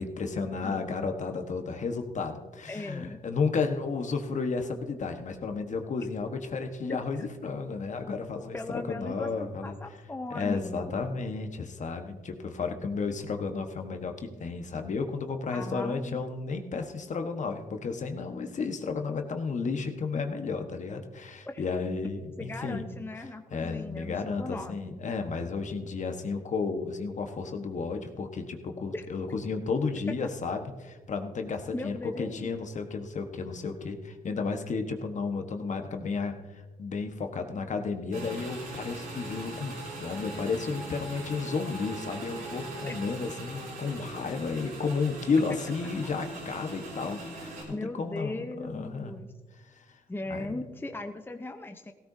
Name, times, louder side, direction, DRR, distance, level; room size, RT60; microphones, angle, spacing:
voice 1, 0.0-9.7 10.3-22.9 23.2-49.1 49.7-49.8 50.3-50.6, left 4 dB, 50° left, 6 dB, 1.3 m, -33 dB
voice 2, 2.7-3.2 6.9-7.0 8.5-10.8 15.5-16.3 21.5-21.6 22.4-25.0 28.9-29.1 31.7-32.5 42.9-43.0 45.8-45.9 47.7-49.3 50.1-51.9, left 2 dB, 15° left, 6 dB, 0.8 m, -38 dB
Motorcycle / Engine, 38.1-47.6, right 2 dB, 85° right, 4.4 m, -41 dB
16.0 x 14.5 x 2.8 m, 1.3 s
cardioid pair, 70°, 15 cm